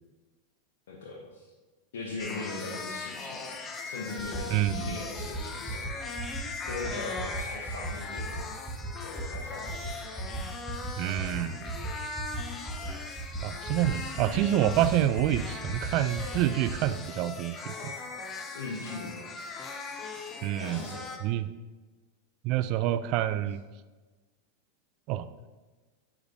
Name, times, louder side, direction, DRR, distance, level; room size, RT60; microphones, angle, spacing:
voice 1, 0.9-1.5 1.9-5.9 6.3-8.5 9.0-9.9 18.5-19.3 20.6-21.0, left 3 dB, 85° left, -4 dB, 1.1 m, -40 dB
sound 1, 2.2-21.2, left 4 dB, 25° left, 0.6 m, -39 dB
sound 2, 4.2-4.4 4.7-4.9 5.2-5.4 5.7-5.9 6.2-6.4 6.7-6.9 7.2-7.4 7.7-7.9 8.2-8.4 8.7-8.9 9.2-9.4 9.7-9.9 10.2-10.4 10.7-10.9 11.2-11.4 11.7-11.9 12.2-12.4 12.7-12.9 13.2-13.4 13.7-13.9 14.2-14.4 14.7-14.9 15.2-15.4 15.7-15.9 16.2-16.4 16.7-16.8, right 2 dB, 15° right, 1.0 m, -36 dB
voice 2, 4.5-5.0 11.0-11.8 13.4-17.9 20.4-20.8 21.2-21.5 22.4-23.6 25.1-25.3, right 12 dB, 50° right, 13 dB, 0.3 m, -27 dB
8.3 x 4.9 x 2.6 m, 1.3 s
supercardioid pair, 130°, 0 cm